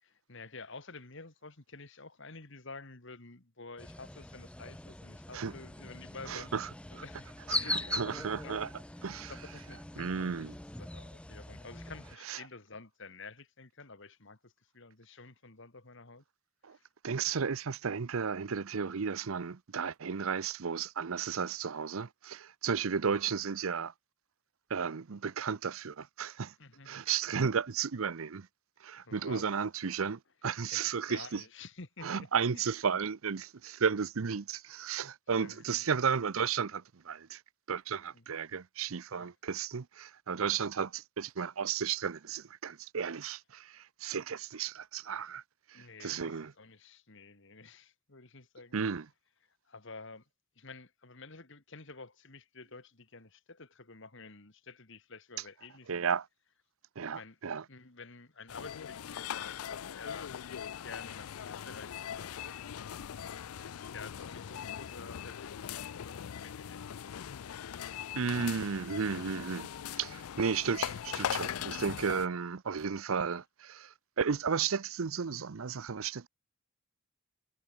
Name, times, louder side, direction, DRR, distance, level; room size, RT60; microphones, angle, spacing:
voice 1, 0.0-6.5 6.9-8.6 9.2-10.5 10.8-16.2 16.7-16.8 26.6-26.9 29.1-29.5 30.6-32.3 32.5-32.7 35.4-35.9 38.1-38.2 39.2-39.3 40.5-40.6 45.7-48.8 49.7-50.2 50.6-56.1 57.1-57.4 57.7-60.4 60.7-66.9, left 4 dB, 60° left, 2.1 m, -50 dB
sound 1, 3.8-12.2, left 1 dB, 5° left, 0.5 m, -41 dB
voice 2, 6.3-6.7 7.0-7.1 7.5-8.7 9.0-9.3 10.0-10.5 12.3-12.4 16.6-16.8 17.0-23.9 24.7-26.5 26.9-28.5 28.8-31.4 32.0-37.4 37.7-45.4 45.7-46.5 48.7-49.1 55.9-56.3 57.0-57.6 68.2-76.3, right 6 dB, 75° right, 0.6 m, -34 dB
sound 2, 58.5-72.3, left 9 dB, 90° left, 0.4 m, -40 dB
head